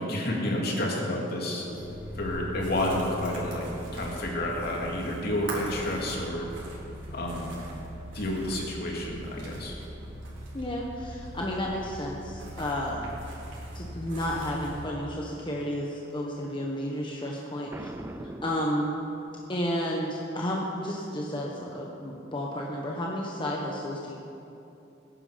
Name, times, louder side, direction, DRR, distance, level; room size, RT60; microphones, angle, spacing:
voice 1, 0.0-1.6 2.2-3.7 3.9-6.5 7.1-7.6 8.1-9.8, left 1 dB, 55° left, -2 dB, 2.7 m, -30 dB
sound 1, 1.6-14.9, right 1 dB, 90° right, 3.9 m, -40 dB
voice 2, 10.5-13.1 13.7-17.9 18.4-18.9 19.5-24.1, equal, 25° left, -2 dB, 1.2 m, -32 dB
Boom, 17.7-19.5, right 1 dB, 10° right, 0.4 m, -41 dB
18.5 x 11.0 x 5.2 m, 2.9 s
head